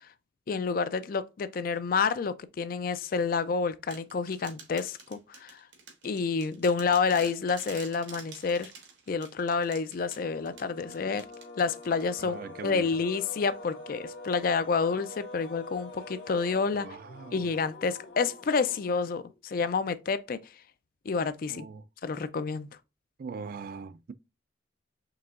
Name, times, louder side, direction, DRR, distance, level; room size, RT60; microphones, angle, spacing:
voice 1, 0.5-5.6 6.0-8.7 9.1-11.3 11.6-16.9 17.3-20.4 21.1-21.6 22.0-22.7, left 5 dB, 50° left, 0.4 m, -29 dB
sound 1, 3.9-12.3, right 5 dB, 80° right, 1.6 m, -49 dB
sound 2, 10.0-19.4, left 2 dB, 85° left, 1.4 m, -46 dB
voice 2, 12.2-12.9 16.7-17.5 21.5-21.9 23.2-24.1, right 5 dB, 50° right, 0.3 m, -41 dB
4.7 x 3.4 x 2.4 m
head